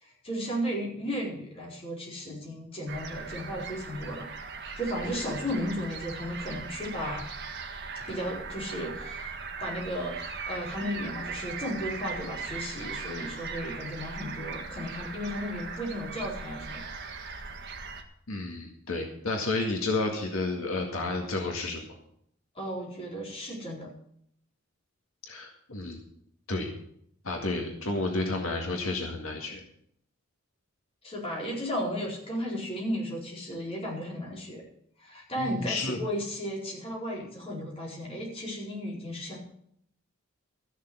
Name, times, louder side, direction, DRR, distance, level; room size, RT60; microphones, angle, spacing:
voice 1, 0.0-4.3 4.6-7.2 8.1-9.3 9.6-17.0 22.5-23.9 31.0-34.6 35.0-39.4, equal, 30° left, -3 dB, 4.6 m, -34 dB
sound 1, 2.9-18.0, right 4 dB, 55° right, 1.6 m, -39 dB
voice 2, 5.0-5.4 18.3-21.9 25.3-26.0 26.5-26.7 27.2-29.6 35.4-36.0, left 2 dB, 80° left, 2 dB, 2.1 m, -31 dB
14.0 x 6.6 x 8.1 m, 0.70 s
head